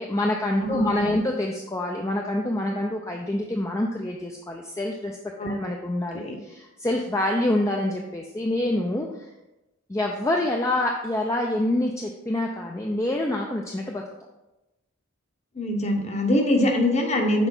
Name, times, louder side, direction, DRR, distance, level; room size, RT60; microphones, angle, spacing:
voice 1, 0.0-9.3 9.9-14.0, left 1 dB, 15° left, 1 dB, 0.4 m, -26 dB
voice 2, 0.6-1.2 5.4-5.5 6.1-6.4 15.5-17.5, left 1 dB, 30° left, 3 dB, 0.9 m, -23 dB
6.1 x 4.4 x 5.4 m, 1.0 s
head